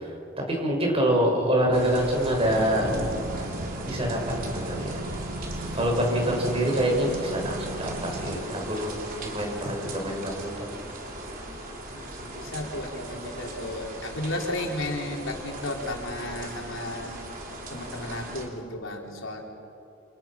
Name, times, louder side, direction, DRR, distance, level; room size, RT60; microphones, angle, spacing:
voice 1, 0.0-2.9 3.8-5.0 5.7-8.9 9.2-10.7, right 1 dB, 30° right, 0 dB, 6.6 m, -26 dB
sound 1, 1.7-18.5, right 1 dB, 45° right, 4.2 m, -38 dB
sound 2, 2.4-8.4, right 1 dB, 85° right, 1.6 m, -38 dB
voice 2, 11.9-17.2 17.7-19.4, left 1 dB, 80° left, 0 dB, 4.1 m, -34 dB
29.5 x 28.0 x 6.1 m, 2.8 s
head